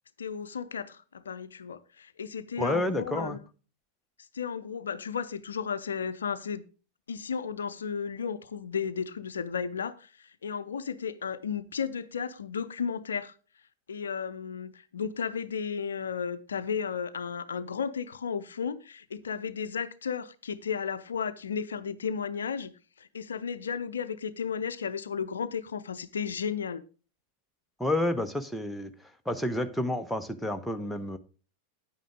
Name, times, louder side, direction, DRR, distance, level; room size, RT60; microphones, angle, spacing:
voice 1, 0.2-3.4 4.3-6.6 7.1-13.3 13.9-22.7 23.0-26.8, left 6 dB, 70° left, 0.6 m, -34 dB
voice 2, 2.6-3.4 27.8-28.9 29.2-31.2, left 1 dB, ahead, 1.0 m, -30 dB
10.0 x 9.0 x 3.6 m
figure-of-eight pair, 90°, 0 cm